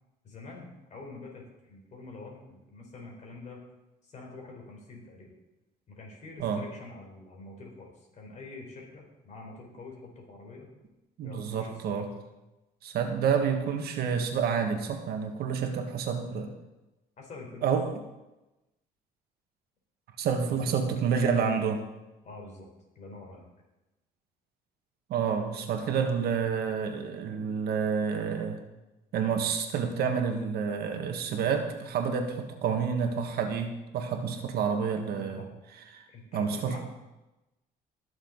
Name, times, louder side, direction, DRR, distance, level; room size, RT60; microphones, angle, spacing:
voice 1, 0.2-3.6 4.0-5.3 5.9-10.7 11.2-12.0 17.2-17.7 20.4-21.3 22.2-22.7 22.9-23.5 35.4-35.5 36.1-36.8, left 3 dB, 45° left, 0 dB, 4.3 m, -46 dB
voice 2, 11.2-12.1 12.8-16.5 17.6-17.9 20.2-21.8 25.1-28.6 29.1-35.4 35.9-36.0 36.3-36.8, right 6 dB, 70° right, 4 dB, 1.7 m, -29 dB
21.0 x 7.0 x 4.1 m, 1.0 s
cardioid pair, 110°, 17 cm